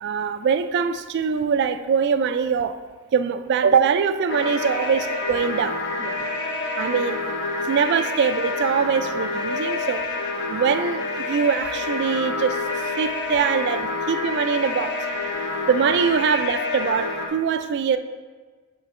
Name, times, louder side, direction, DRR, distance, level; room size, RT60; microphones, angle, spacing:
voice 1, 0.0-2.8 3.1-6.3 6.8-7.2 7.6-10.0 10.5-12.6 13.0-14.9 15.7-18.0, right 6 dB, 50° right, 11 dB, 0.3 m, -23 dB
sound 1, 4.3-17.3, left 3 dB, 55° left, 0.8 m, -28 dB
8.0 x 3.9 x 4.2 m, 1.4 s
head